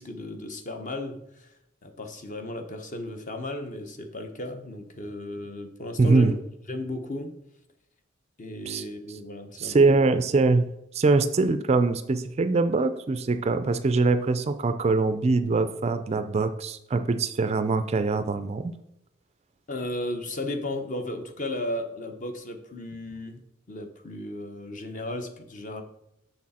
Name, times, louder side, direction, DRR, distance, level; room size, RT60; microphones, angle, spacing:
voice 1, 0.0-1.5 1.8-6.3 6.7-7.3 8.4-10.0 19.7-23.4 23.7-25.8, left 1 dB, 40° left, 6 dB, 0.9 m, -35 dB
voice 2, 6.0-6.3 8.7-8.8 9.6-18.7, right 3 dB, 30° right, 10 dB, 0.3 m, -23 dB
6.7 x 6.2 x 4.2 m, 0.83 s
head